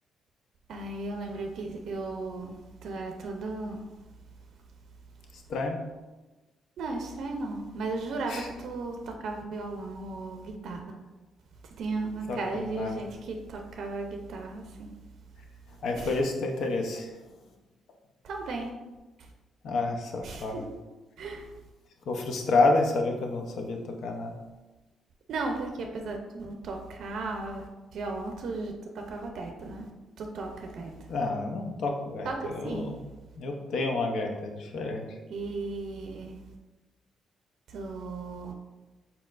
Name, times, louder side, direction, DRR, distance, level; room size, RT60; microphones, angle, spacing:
voice 1, 0.7-3.9 6.8-10.8 11.6-14.9 15.9-16.2 18.2-18.7 19.2-19.3 20.2-20.7 21.2-21.5 25.3-29.9 30.2-31.1 32.2-33.0 35.3-36.4 37.7-38.5, right 3 dB, 70° right, 3 dB, 0.5 m, -36 dB
voice 2, 12.3-12.9 15.8-17.1 19.6-20.6 22.1-24.3 31.1-33.0 33.4-35.0, left 3 dB, 70° left, 3 dB, 0.6 m, -29 dB
4.5 x 4.1 x 2.4 m, 1.2 s
cardioid pair, 90°, 0 cm